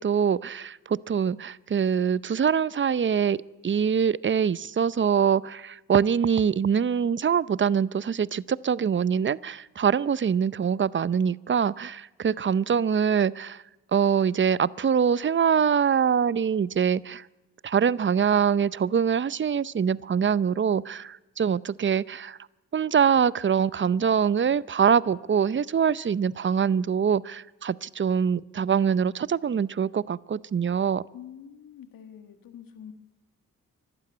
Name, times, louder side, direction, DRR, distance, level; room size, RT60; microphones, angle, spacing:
voice 1, 0.0-3.4 3.6-13.6 13.9-17.2 17.6-22.4 22.7-31.0, right 7 dB, 35° right, 20 dB, 0.7 m, -24 dB
voice 2, 31.1-32.9, left 9 dB, 80° left, 8 dB, 1.9 m, -45 dB
25.0 x 12.0 x 9.4 m, 1.0 s
supercardioid pair, 50°, 34 cm